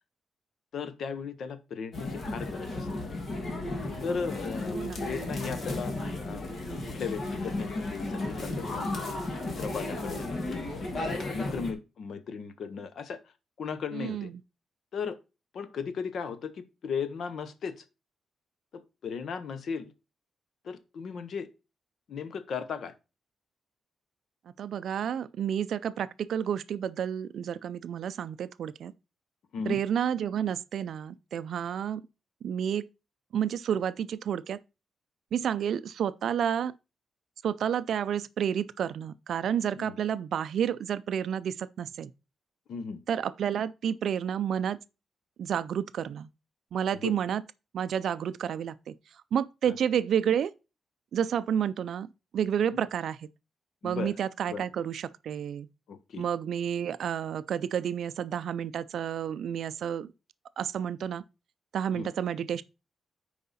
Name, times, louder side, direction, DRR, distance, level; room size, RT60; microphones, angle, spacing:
voice 1, 0.7-2.9 4.0-5.9 6.2-6.6 6.9-9.2 9.6-10.7 10.9-13.2 13.6-14.3 14.9-15.2 15.5-17.8 18.7-19.9 20.6-21.5 22.1-22.9 29.5-29.8 39.8-40.0 42.7-43.0 47.0-47.1 49.7-49.8 53.8-54.2 54.5-54.6 55.9-56.2 61.9-62.1, left 6 dB, 55° left, 0.8 m, -36 dB
sound 1, 1.9-11.7, left 2 dB, 35° left, 1.7 m, -34 dB
voice 2, 4.7-5.1 13.9-14.3 24.6-28.9 29.7-32.0 32.4-32.9 33.3-34.6 35.3-36.7 37.4-42.1 43.1-44.8 45.4-46.3 46.7-47.4 47.7-48.9 49.3-50.5 51.1-52.1 52.3-53.2 53.8-55.7 56.2-60.1 60.6-61.2 61.7-62.6, right 8 dB, 65° right, 0.3 m, -30 dB
9.4 x 4.7 x 4.1 m
wide cardioid pair, 170°, 0 cm